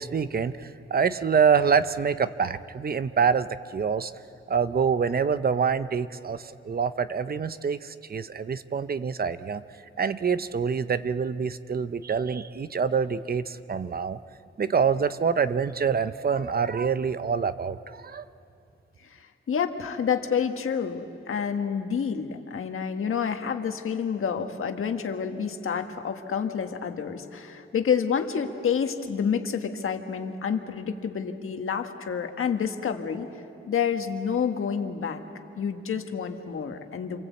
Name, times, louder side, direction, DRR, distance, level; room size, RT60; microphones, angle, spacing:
voice 1, 0.0-4.1 4.5-9.6 10.0-14.2 14.6-18.2, right 6 dB, 45° right, 13 dB, 0.7 m, -26 dB
voice 2, 19.1-33.3 33.7-35.2 35.6-37.2, left 7 dB, 80° left, 6 dB, 1.6 m, -29 dB
28.5 x 23.0 x 8.4 m, 2.7 s
wide cardioid pair, 120°, 21 cm